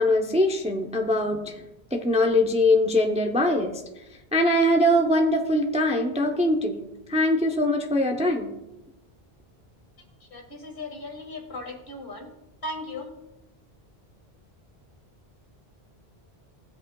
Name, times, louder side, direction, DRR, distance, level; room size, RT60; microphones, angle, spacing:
voice 1, 0.0-1.6 1.9-3.8 4.3-8.5, left 1 dB, 10° right, 2 dB, 0.6 m, -22 dB
voice 2, 10.2-12.3 12.6-13.1, left 2 dB, 60° left, 2 dB, 1.9 m, -37 dB
15.5 x 8.0 x 2.3 m, 0.93 s
omnidirectional pair, 1.0 m